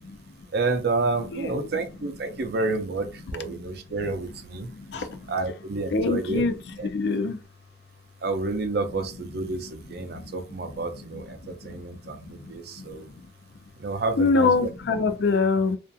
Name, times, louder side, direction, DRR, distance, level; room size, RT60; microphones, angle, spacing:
voice 1, 0.5-4.7 5.3-6.4 6.8-7.2 8.2-13.1 13.8-14.7 15.3-15.4, right 3 dB, 60° right, 0.5 m, -30 dB
voice 2, 4.6-5.2 5.9-6.5 6.8-7.4 10.0-10.3 11.4-11.8 12.4-12.9 14.1-15.8, left 4 dB, 65° left, 0.4 m, -25 dB
2.5 x 2.3 x 2.5 m
head